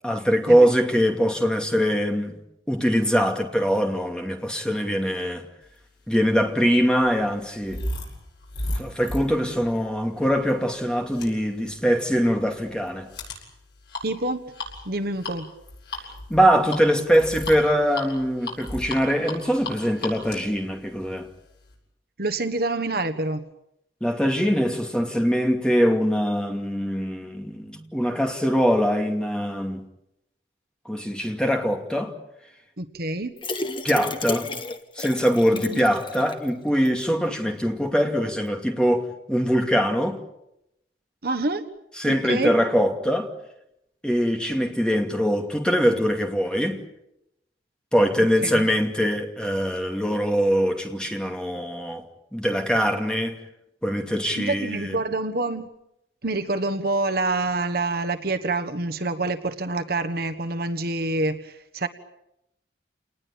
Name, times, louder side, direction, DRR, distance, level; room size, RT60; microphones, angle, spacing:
voice 1, 0.0-2.4 2.7-5.5 6.1-7.8 8.8-13.1 16.3-21.3 24.0-29.8 30.9-32.1 33.8-34.5 35.0-40.2 42.0-43.3 44.0-46.8 47.9-52.0 52.3-53.4 53.8-55.0, equal, 5° left, 2.4 m, -22 dB
sound 1, 6.1-21.7, left 1 dB, 65° left, 7.8 m, -36 dB
voice 2, 14.0-14.4 14.8-15.5 22.2-23.4 32.8-33.4 35.5-35.8 41.2-41.7 42.0-42.6 48.4-48.7 54.4-55.7 56.2-61.9, right 2 dB, 55° right, 1.4 m, -27 dB
sound 2, 33.4-36.5 36.8-36.9 37.3-37.4, left 3 dB, 25° left, 1.6 m, -32 dB
29.0 x 20.0 x 8.8 m
head